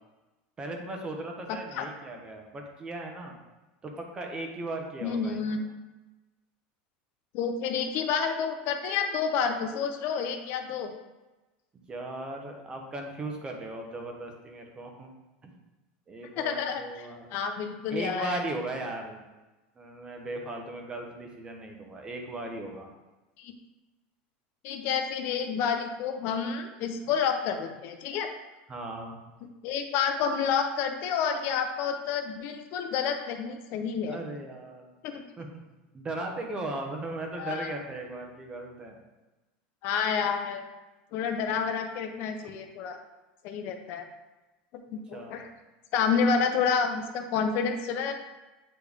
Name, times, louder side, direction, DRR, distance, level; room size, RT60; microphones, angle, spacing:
voice 1, 0.6-3.4 3.8-5.6 11.9-15.1 15.4-15.5 16.1-17.3 17.9-19.2 19.8-22.9 28.7-29.2 34.1-34.9 35.4-35.6 35.9-39.0 45.1-45.4, right 2 dB, 15° right, 2 dB, 0.8 m, -37 dB
voice 2, 5.0-5.6 7.3-10.9 16.4-16.8 17.3-18.4 23.4-23.5 24.6-28.3 29.6-34.2 35.0-35.2 37.4-37.7 39.8-40.6 41.1-43.0 43.4-44.1 44.7-45.5 45.9-48.1, left 6 dB, 50° left, 6 dB, 0.5 m, -29 dB
8.3 x 3.2 x 3.5 m, 1.1 s
supercardioid pair, 155°, 5 cm